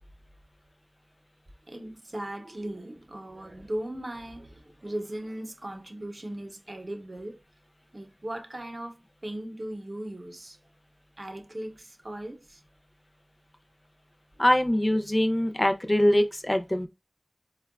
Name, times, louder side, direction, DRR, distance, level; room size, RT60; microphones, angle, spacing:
voice 1, 1.7-7.4 7.9-10.6 11.2-12.6, right 1 dB, 55° right, 0.7 m, -38 dB
voice 2, 14.4-16.9, left 1 dB, 30° left, 0.5 m, -23 dB
4.4 x 2.2 x 2.3 m
wide cardioid pair, 45°, 0 cm